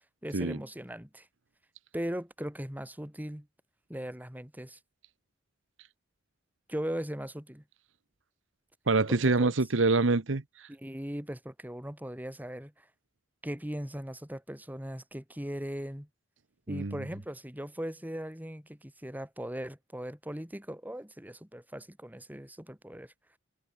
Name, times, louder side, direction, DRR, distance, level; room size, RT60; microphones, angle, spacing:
voice 1, 0.2-1.3 1.9-3.5 3.9-4.8 6.7-7.6 9.1-9.5 10.7-12.9 13.4-16.1 16.7-23.1, equal, 10° right, 4.0 m, -39 dB
voice 2, 8.9-10.7 16.7-17.0, right 3 dB, 70° right, 1.0 m, -26 dB
head